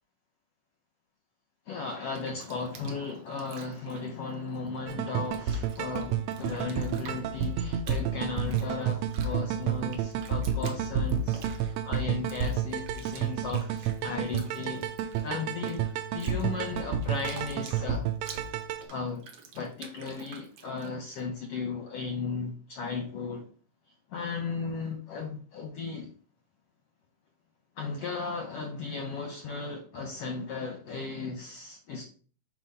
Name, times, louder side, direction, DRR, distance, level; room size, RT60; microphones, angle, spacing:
voice 1, 1.7-14.8 15.2-15.9 16.1-18.1 18.9-19.2 19.5-23.4 24.1-26.1 27.8-32.0, left 4 dB, 75° left, 3 dB, 1.4 m, -36 dB
Bathtub (filling or washing), 1.9-4.9 5.2-21.2, right 6 dB, 70° right, 1.5 m, -50 dB
sound 1, 4.9-18.8, right 8 dB, 90° right, 1.5 m, -31 dB
6.2 x 3.0 x 5.4 m, 0.41 s
omnidirectional pair, 3.7 m